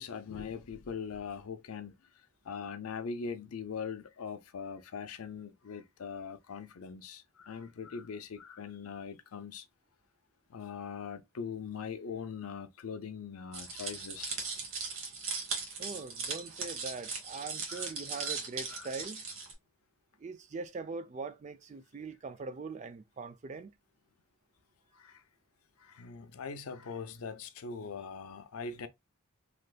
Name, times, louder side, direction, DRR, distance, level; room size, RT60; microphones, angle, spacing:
voice 1, 0.0-1.9 2.4-9.6 10.5-14.4 17.7-17.9 18.2-18.4 18.7-18.9 24.9-25.2 25.8-28.9, left 6 dB, 90° left, 0.5 m, -41 dB
sound 1, 13.5-19.5, right 4 dB, 65° right, 1.0 m, -38 dB
voice 2, 15.8-19.2 20.2-23.7, right 4 dB, 35° right, 0.3 m, -42 dB
3.4 x 2.6 x 2.3 m
head